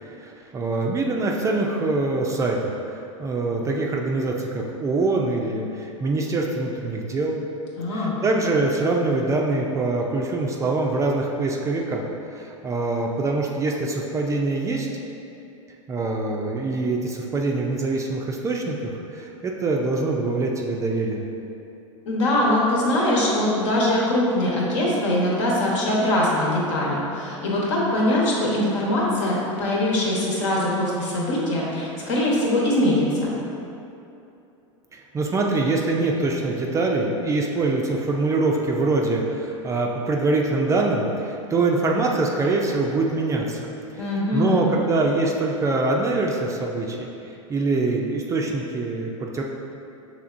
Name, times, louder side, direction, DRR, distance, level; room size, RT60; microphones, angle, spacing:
voice 1, 0.0-7.4 7.9-12.0 12.3-14.9 15.9-21.2 34.9-43.7 44.3-49.4, right 3 dB, 20° right, 0 dB, 0.4 m, -24 dB
voice 2, 7.8-8.2 22.0-33.3 44.0-44.7, left 1 dB, 70° left, -4 dB, 1.2 m, -22 dB
5.7 x 3.4 x 2.5 m, 2.8 s
hypercardioid pair, 110°, 16 cm